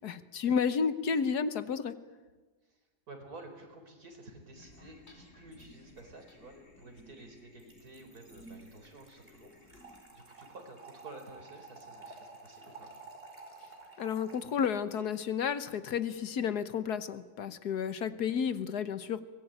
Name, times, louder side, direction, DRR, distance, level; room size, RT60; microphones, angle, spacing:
voice 1, 0.0-1.9 14.0-19.2, left 6 dB, 70° left, 12 dB, 1.5 m, -31 dB
voice 2, 3.1-12.9, right 2 dB, 60° right, 4 dB, 4.8 m, -51 dB
sound 1, 4.6-10.0, equal, 35° left, 3.2 m, -56 dB
Trickle dribble / Fill (with liquid), 7.6-15.0, right 3 dB, 30° right, 5.0 m, -52 dB
24.0 x 20.0 x 9.0 m, 1.2 s
omnidirectional pair, 1.8 m